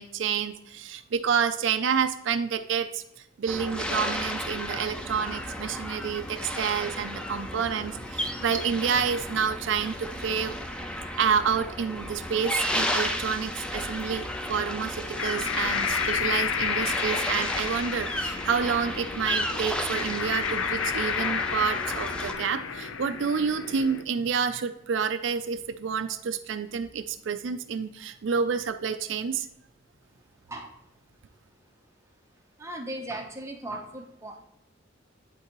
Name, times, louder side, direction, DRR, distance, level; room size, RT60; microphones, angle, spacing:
voice 1, 0.0-3.0 3.4-10.6 11.2-29.5, right 6 dB, 65° right, 9 dB, 0.4 m, -29 dB
sound 1, 3.5-22.3, equal, 5° left, 0.5 m, -33 dB
sound 2, 15.1-24.0, left 6 dB, 80° left, 0.5 m, -31 dB
voice 2, 32.6-34.5, right 1 dB, 15° right, 2 dB, 0.8 m, -37 dB
10.5 x 3.8 x 3.0 m, 0.78 s
head